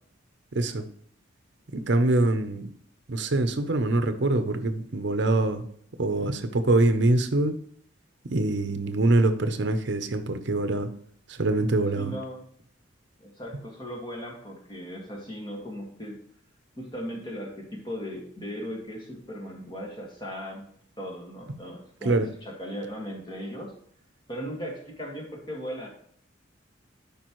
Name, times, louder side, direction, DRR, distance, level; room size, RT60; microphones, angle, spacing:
voice 1, 0.5-0.8 1.7-2.7 3.1-5.6 6.0-7.6 8.2-10.9 11.3-12.1 22.0-22.3, right 2 dB, 60° right, 9 dB, 0.7 m, -24 dB
voice 2, 11.9-12.4 13.2-16.2 16.8-20.6 21.0-22.1 22.4-23.7 24.3-25.9, equal, 20° left, 0 dB, 1.8 m, -37 dB
13.0 x 5.4 x 3.1 m, 0.63 s
head